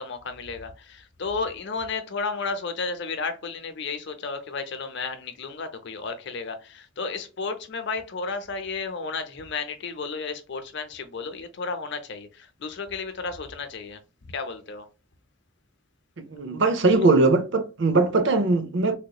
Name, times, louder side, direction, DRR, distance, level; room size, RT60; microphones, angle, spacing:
voice 1, 0.0-14.0 14.3-14.9, left 4 dB, 55° left, 0.7 m, -33 dB
voice 2, 16.2-19.0, right 3 dB, 60° right, 0.6 m, -21 dB
3.5 x 2.9 x 2.3 m
head